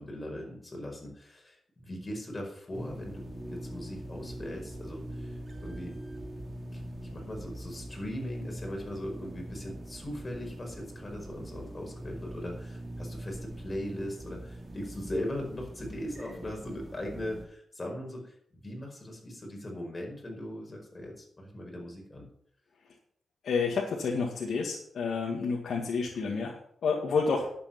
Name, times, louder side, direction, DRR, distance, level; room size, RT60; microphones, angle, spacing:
voice 1, 0.0-6.0 6.7-6.8 7.1-22.3, left 1 dB, 25° left, 1 dB, 5.0 m, -39 dB
sound 1, 2.7-17.4, right 1 dB, 35° right, 2.8 m, -42 dB
voice 2, 23.4-27.5, left 5 dB, 75° left, -2 dB, 2.0 m, -30 dB
11.0 x 8.3 x 5.9 m, 0.68 s
cardioid pair, 75°, 0 cm